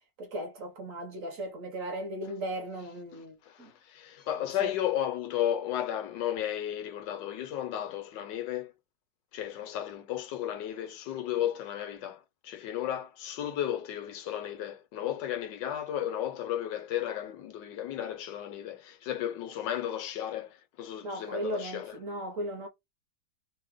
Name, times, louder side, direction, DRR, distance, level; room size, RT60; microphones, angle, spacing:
voice 1, 0.2-3.7 4.6-4.7 21.0-22.7, right 1 dB, 55° right, 1.2 m, -37 dB
voice 2, 3.1-8.7 9.3-22.0, left 11 dB, 85° left, 1.3 m, -34 dB
3.3 x 2.1 x 3.6 m
omnidirectional pair, 1.9 m